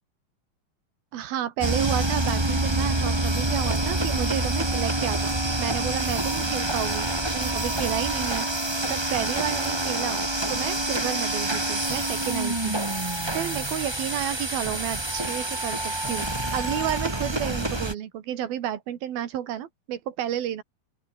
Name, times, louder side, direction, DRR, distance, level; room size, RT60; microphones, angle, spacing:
voice 1, 1.1-7.1 7.3-8.5 8.9-12.8 13.3-16.3 16.5-20.6, right 11 dB, 80° right, 3.8 m, -31 dB
sound 1, 1.6-17.9, right 2 dB, 10° right, 1.3 m, -27 dB
open air
omnidirectional pair, 4.3 m